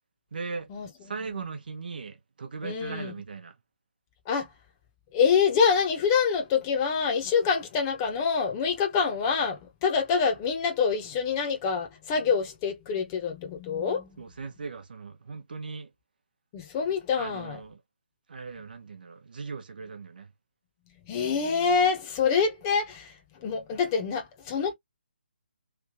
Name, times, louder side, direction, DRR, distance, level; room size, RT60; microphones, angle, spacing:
voice 1, 0.3-0.7 1.0-3.5 14.2-15.9 17.2-17.8 18.3-20.3, right 4 dB, 55° right, 0.9 m, -38 dB
voice 2, 2.6-3.2 4.3-4.5 5.1-14.2 16.5-17.6 21.0-24.7, left 6 dB, 20° left, 1.0 m, -26 dB
3.4 x 2.6 x 3.7 m
figure-of-eight pair, 145°, 6 cm